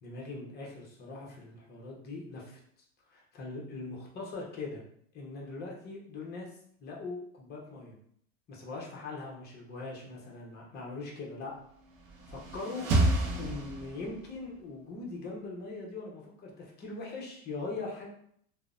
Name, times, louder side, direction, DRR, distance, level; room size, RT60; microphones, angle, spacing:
voice 1, 0.0-2.6 3.1-4.8 5.1-6.5 6.8-8.0 8.5-11.5 12.3-12.9 13.4-18.1, left 3 dB, 25° left, -2 dB, 0.6 m, -41 dB
sound 1, 11.9-14.3, right 2 dB, 40° right, 0.5 m, -29 dB
3.0 x 2.0 x 2.5 m, 0.66 s
supercardioid pair, 145°, 39 cm